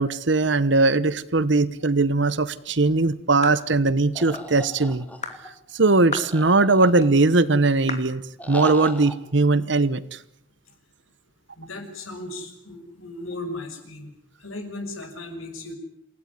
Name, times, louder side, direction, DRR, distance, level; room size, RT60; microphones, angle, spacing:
voice 1, 0.0-5.1 5.7-8.2 8.5-10.2, right 3 dB, 65° right, 16 dB, 1.1 m, -20 dB
sound 1, 3.4-3.7 4.3-4.5 5.2-5.4 6.1-6.4 7.0-7.1 7.9-8.1, left 5 dB, 35° left, 2.7 m, -33 dB
sound 2, 4.2-5.5 6.2-7.3 8.4-9.2, equal, 5° left, 2.3 m, -37 dB
voice 2, 11.6-14.1 14.4-15.7, left 2 dB, 90° left, 5 dB, 6.6 m, -36 dB
28.0 x 17.0 x 9.8 m, 0.74 s
head